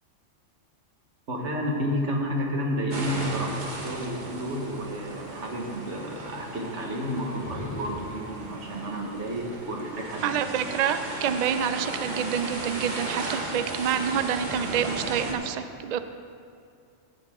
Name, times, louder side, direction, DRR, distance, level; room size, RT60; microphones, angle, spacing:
voice 1, 1.3-10.4, equal, 65° right, 0 dB, 1.7 m, -31 dB
sound 1, 2.9-15.3, right 2 dB, 40° right, 1.2 m, -36 dB
sound 2, 7.2-8.4, left 2 dB, 20° left, 0.5 m, -40 dB
voice 2, 10.2-16.0, right 8 dB, 80° right, 10 dB, 0.3 m, -27 dB
14.5 x 8.1 x 3.7 m, 2.4 s
omnidirectional pair, 1.3 m